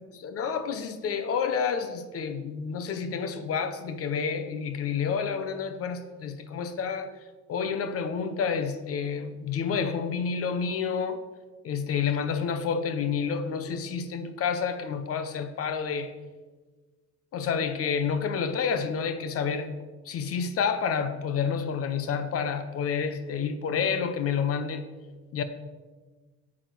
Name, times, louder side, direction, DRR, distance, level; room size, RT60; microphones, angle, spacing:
voice 1, 0.1-7.1 7.5-11.2 11.6-16.1 17.3-19.7 20.1-24.8 25.3-25.4, left 6 dB, 50° left, 10 dB, 1.0 m, -29 dB
9.0 x 7.5 x 6.1 m, 1.3 s
cardioid pair, 120°, 29 cm